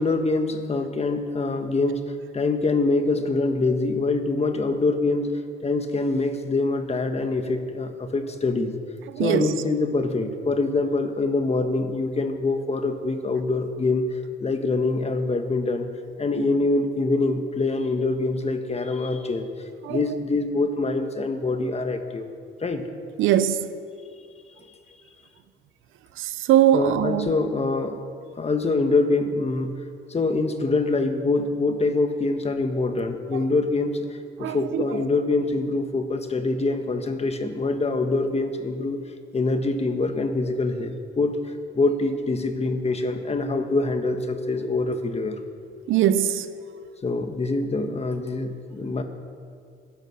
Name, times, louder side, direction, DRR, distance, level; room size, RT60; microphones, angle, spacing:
voice 1, 0.0-8.7 9.2-14.1 14.4-15.9 16.2-19.5 19.9-22.3 22.6-22.8 26.7-28.0 28.4-29.8 30.1-39.0 39.3-41.4 41.7-45.4 47.0-49.0, left 3 dB, 30° left, 1.5 m, -24 dB
voice 2, 9.1-9.5 19.8-20.0 23.2-23.6 26.2-27.3 33.3-33.4 34.4-35.0 45.9-46.5, right 11 dB, 85° right, 0.8 m, -21 dB
16.5 x 10.5 x 6.6 m
cardioid pair, 90°, 20 cm